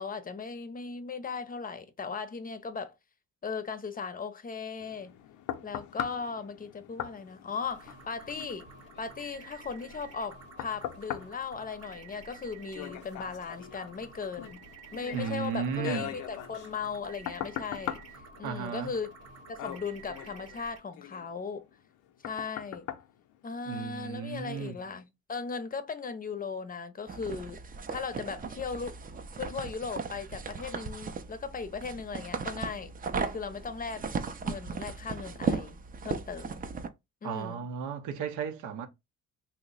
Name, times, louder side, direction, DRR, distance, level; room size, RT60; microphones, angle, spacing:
voice 1, 0.0-2.9 3.4-5.1 5.6-8.7 9.0-14.6 14.9-18.0 18.4-19.1 19.5-21.7 22.2-22.9 23.4-27.6 27.9-29.0 29.4-32.9 33.3-34.0 34.5-35.8 36.0-36.6 37.2-37.7, left 5 dB, 30° left, 0.6 m, -37 dB
sound 1, 4.8-24.1 24.6-24.7, left 11 dB, 85° left, 0.5 m, -42 dB
sound 2, 7.6-20.8, right 5 dB, 55° right, 0.8 m, -51 dB
voice 2, 15.1-16.2 18.4-18.9 23.7-24.8 37.2-38.9, right 7 dB, 90° right, 0.7 m, -34 dB
sound 3, 27.1-36.9, right 5 dB, 30° right, 0.5 m, -36 dB
3.0 x 2.0 x 3.8 m
cardioid pair, 90°, 30 cm